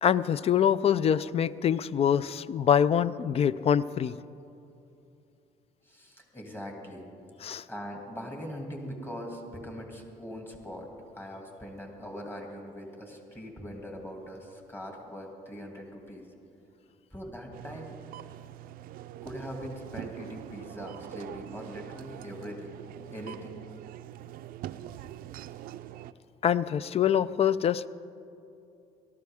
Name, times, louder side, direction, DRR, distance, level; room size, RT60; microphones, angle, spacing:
voice 1, 0.0-4.2 7.4-7.6 26.4-27.9, left 8 dB, 40° left, 17 dB, 0.3 m, -25 dB
voice 2, 5.8-7.1 7.7-10.9 11.1-16.3 17.1-18.0 19.2-22.7 23.1-23.5, equal, 15° left, 1 dB, 2.4 m, -41 dB
sound 1, 17.5-26.1, right 12 dB, 70° right, 0.4 m, -43 dB
18.0 x 13.0 x 3.6 m, 2.7 s
cardioid pair, 100°, 15 cm